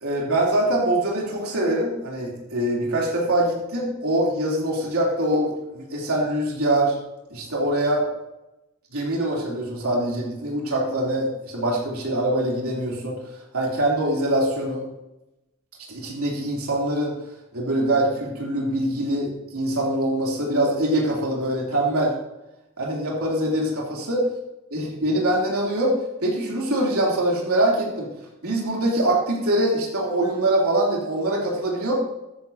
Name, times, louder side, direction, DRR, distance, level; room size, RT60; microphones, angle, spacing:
voice 1, 0.0-6.9 7.3-8.0 8.9-13.2 13.5-14.8 15.9-17.1 17.5-22.1 22.8-24.2 24.7-25.9 26.2-28.1 28.4-31.9, right 1 dB, 85° right, -3 dB, 3.1 m, -23 dB
13.0 x 9.8 x 2.8 m, 0.94 s
head